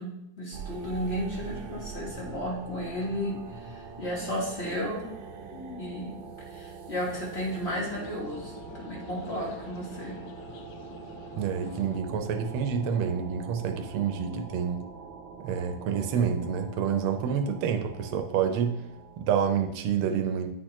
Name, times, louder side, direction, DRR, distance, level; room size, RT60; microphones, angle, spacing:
voice 1, 0.0-5.1 5.5-6.2 6.5-10.2, equal, 35° left, -4 dB, 1.3 m, -34 dB
sound 1, 0.5-19.7, right 5 dB, 70° right, 1.3 m, -44 dB
sound 2, 7.0-12.0, left 7 dB, 75° left, 1.0 m, -47 dB
voice 2, 11.4-14.8 15.4-18.8 19.2-20.5, right 7 dB, 85° right, 6 dB, 1.6 m, -28 dB
9.8 x 4.4 x 3.0 m, 0.81 s
omnidirectional pair, 2.3 m